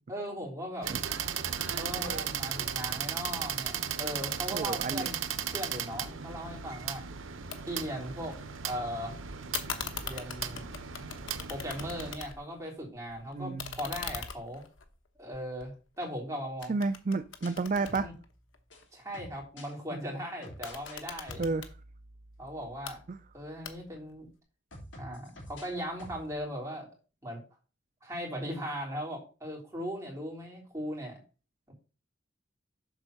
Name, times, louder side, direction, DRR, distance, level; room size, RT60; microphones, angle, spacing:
voice 1, 0.1-0.9 1.8-5.2 5.5-7.0 7.7-8.4 8.6-9.2 10.0-10.7 11.5-14.6 15.2-16.7 18.0-18.1 18.9-21.4 22.4-23.0 23.3-24.3 25.0-26.9 27.2-27.4 28.0-31.2 31.7-31.8, equal, 15° right, -2 dB, 3.4 m, -38 dB
sound 1, 0.8-12.2, right 8 dB, 90° right, 0.9 m, -36 dB
voice 2, 4.5-5.1 13.3-13.7 16.7-18.1 19.9-20.0 21.4-21.7 23.1-23.2, right 3 dB, 40° right, 11 dB, 0.4 m, -31 dB
sound 2, 7.5-7.6 7.9-8.7 9.5-12.6 12.9-16.2 16.6-18.8 20.5-21.7 22.6-23.0 23.6-24.1, left 7 dB, 80° left, 1.1 m, -41 dB
sound 3, 17.0-19.7 20.4-21.0 21.3-24.3 24.7-26.3, equal, 65° left, 3.1 m, -50 dB
7.4 x 4.4 x 6.5 m, 0.35 s
head